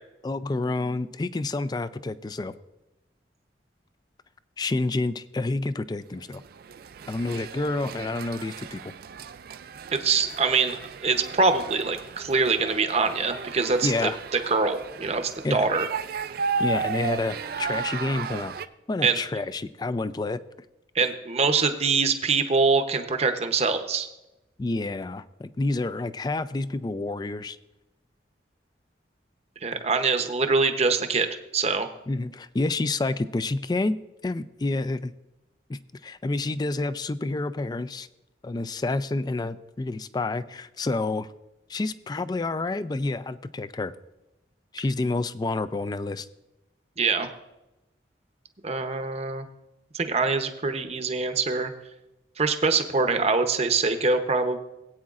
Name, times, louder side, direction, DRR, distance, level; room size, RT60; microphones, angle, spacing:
voice 1, 0.2-2.5 4.6-6.4 7.1-8.9 13.8-14.2 15.4-15.7 16.6-18.5 18.9-20.4 24.6-27.6 32.1-34.0 34.2-35.1 35.7-38.1 38.4-41.3 41.7-43.9 44.7-46.3, left 2 dB, 25° left, 14 dB, 0.3 m, -29 dB
sound 1, 6.3-18.7, right 5 dB, 55° right, 0.4 m, -34 dB
voice 2, 9.9-10.8 11.0-13.9 14.3-15.9 19.0-19.2 20.9-24.1 29.6-31.3 31.5-31.9 47.0-47.3 48.6-49.4 49.9-51.7 52.4-54.6, right 4 dB, 35° right, 7 dB, 0.8 m, -24 dB
19.0 x 8.6 x 2.4 m, 0.97 s
head